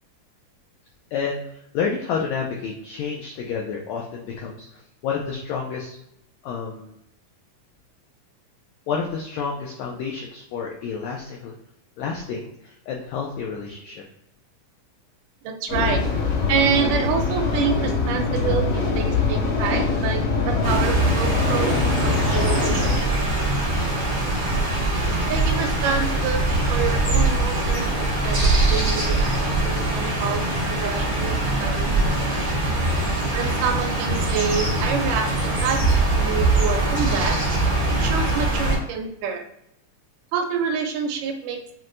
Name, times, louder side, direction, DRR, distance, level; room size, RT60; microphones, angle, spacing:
voice 1, 1.1-6.0 6.4-6.9 8.9-11.5 12.0-14.0, left 6 dB, 85° left, -1 dB, 1.5 m, -30 dB
voice 2, 15.4-16.0 16.5-23.1 25.3-32.4 33.0-37.4 38.0-39.4 40.3-41.6, right 6 dB, 80° right, 5 dB, 2.0 m, -27 dB
sound 1, 15.7-23.0, left 4 dB, 65° left, 1.9 m, -23 dB
sound 2, 20.6-38.8, right 2 dB, 55° right, 0.8 m, -22 dB
5.8 x 2.2 x 2.5 m, 0.77 s
omnidirectional pair, 3.7 m